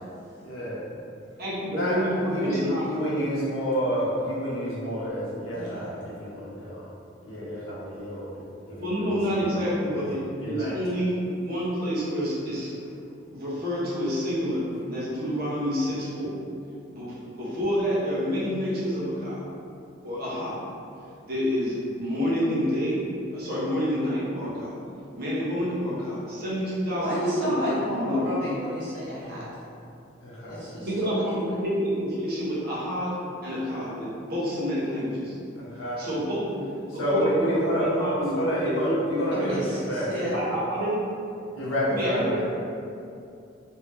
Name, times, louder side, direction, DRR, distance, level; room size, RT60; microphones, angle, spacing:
voice 1, 0.4-0.8 1.7-6.9 7.2-8.4 8.7-9.0 9.3-10.7 29.2-29.5 30.2-30.6 35.6-36.1 36.9-40.4 41.5-42.4, equal, 85° left, -8 dB, 1.1 m, -29 dB
voice 2, 1.4-2.8 8.8-12.7 13.3-16.4 16.9-19.4 20.0-20.6 21.3-23.0 23.3-24.8 25.2-27.6 27.9-28.5 30.8-33.2 33.4-35.3 36.0-36.7 37.1-37.7 38.0-39.5 40.3-41.0 41.9-42.5, equal, 50° right, -8 dB, 1.0 m, -28 dB
voice 3, 5.5-5.9 27.0-29.5 30.5-31.6 39.3-40.3, equal, 65° right, -9 dB, 1.2 m, -31 dB
3.2 x 2.8 x 3.2 m, 2.5 s
head